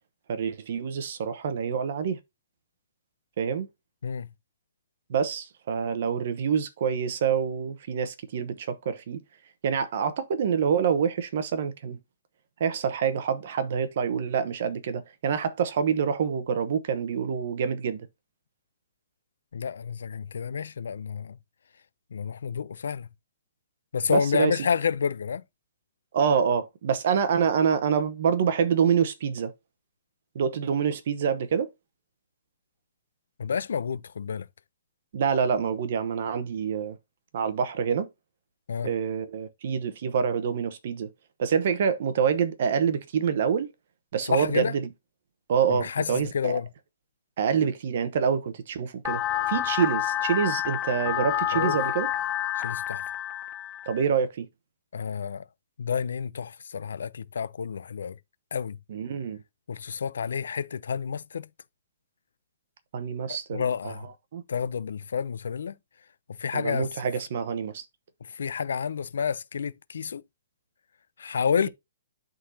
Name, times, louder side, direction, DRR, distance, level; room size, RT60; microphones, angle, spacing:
voice 1, 0.3-2.2 3.4-3.7 5.1-9.2 9.6-12.0 12.6-18.1 24.1-24.6 26.1-29.5 30.3-31.7 35.1-37.0 37.3-38.1 38.8-41.1 41.4-43.7 44.1-44.9 45.5-46.6 47.4-49.2 49.5-52.1 53.9-54.5 58.9-59.4 62.9-63.9 64.3-64.4 66.5-67.8, right 7 dB, 45° right, 0.9 m, -26 dB
voice 2, 19.5-21.4 22.1-23.1 23.9-25.4 33.4-34.5 38.7-38.9 44.3-44.7 45.7-46.7 51.5-51.8 52.6-53.0 54.9-55.4 55.8-58.2 58.5-58.8 59.7-61.5 63.5-64.1 64.5-65.8 66.4-66.9 68.3-70.2 71.2-71.7, left 6 dB, 80° left, 0.4 m, -29 dB
sound 1, 49.0-54.0, left 12 dB, 15° left, 0.4 m, -29 dB
11.0 x 3.8 x 2.7 m
hypercardioid pair, 175°, 0 cm